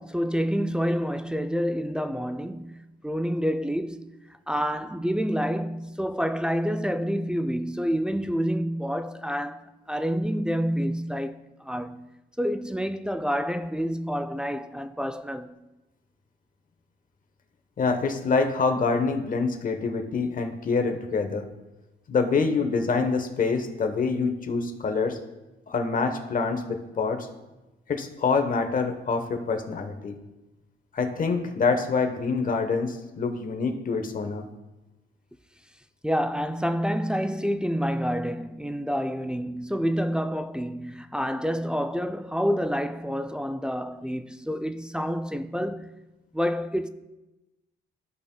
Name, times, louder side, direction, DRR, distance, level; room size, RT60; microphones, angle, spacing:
voice 1, 0.0-2.8 3.0-4.1 4.5-12.0 12.4-15.6 36.0-45.9 46.3-46.9, equal, 5° right, 0.3 m, -28 dB
voice 2, 17.8-21.5 22.1-25.2 25.7-27.3 27.9-30.2 30.9-34.5, left 4 dB, 45° left, 1.0 m, -26 dB
14.0 x 5.4 x 2.2 m
cardioid pair, 90°, 20 cm